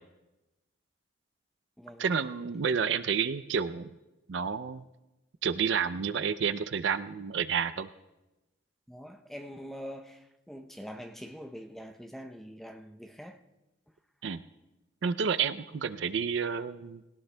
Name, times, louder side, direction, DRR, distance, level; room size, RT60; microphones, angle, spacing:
voice 1, 2.0-3.9 4.3-4.8 5.4-7.9 14.2-14.4 15.0-17.0, right 6 dB, 70° right, 0.4 m, -30 dB
voice 2, 8.9-13.4, equal, ahead, 0.6 m, -44 dB
20.0 x 17.5 x 2.2 m
head